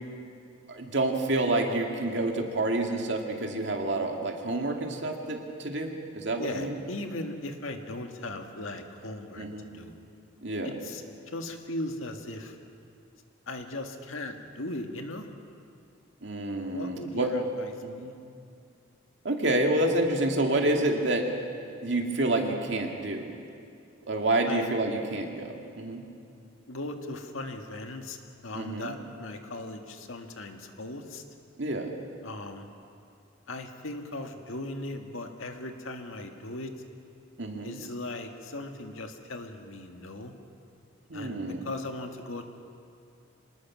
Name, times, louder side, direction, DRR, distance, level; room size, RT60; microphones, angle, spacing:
voice 1, 0.7-6.7 9.4-9.7 10.4-10.7 16.2-17.3 17.8-18.1 19.2-21.3 21.8-23.3 24.1-26.0 28.5-28.9 31.6-31.9 37.4-37.8 41.1-41.7, right 2 dB, 60° right, 2 dB, 2.3 m, -28 dB
voice 2, 6.4-9.9 10.6-12.6 13.5-15.3 16.7-17.7 18.0-18.1 24.4-24.7 26.7-31.2 32.2-32.7 33.5-36.7 37.6-40.3 41.1-42.5, left 2 dB, 85° left, 4 dB, 1.8 m, -38 dB
26.0 x 19.5 x 6.2 m, 2.5 s
head